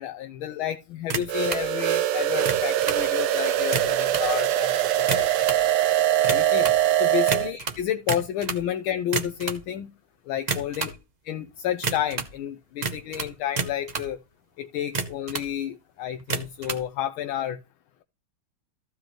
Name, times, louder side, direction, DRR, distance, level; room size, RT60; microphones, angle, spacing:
voice 1, 0.0-5.3 6.3-6.7 7.0-9.9 10.3-10.9 11.2-14.2 14.6-17.6, left 10 dB, 75° left, 1.5 m, -30 dB
sound 1, 1.1-1.7 2.3-3.0 3.6-4.3 4.9-5.7 6.2-6.8 7.3-8.7 9.0-9.6 10.4-11.0 11.8-12.4 12.8-14.1 14.8-15.5 16.2-16.8, right 4 dB, 45° right, 0.5 m, -30 dB
sound 2, 1.3-7.5, right 12 dB, 85° right, 1.7 m, -23 dB
15.0 x 5.2 x 3.0 m
omnidirectional pair, 2.4 m